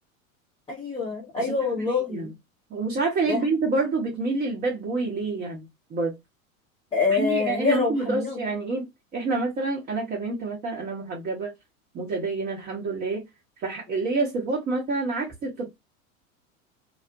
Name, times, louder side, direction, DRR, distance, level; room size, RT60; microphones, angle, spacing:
voice 1, 0.7-2.3 3.3-3.4 6.9-8.4, left 4 dB, 10° left, 0.7 m, -26 dB
voice 2, 1.4-1.7 2.1-2.3 2.7-6.1 7.1-8.9 9.1-11.5 11.9-13.2 13.6-15.7, right 3 dB, 20° right, 0.7 m, -27 dB
2.4 x 2.0 x 2.6 m
figure-of-eight pair, 85°, 42 cm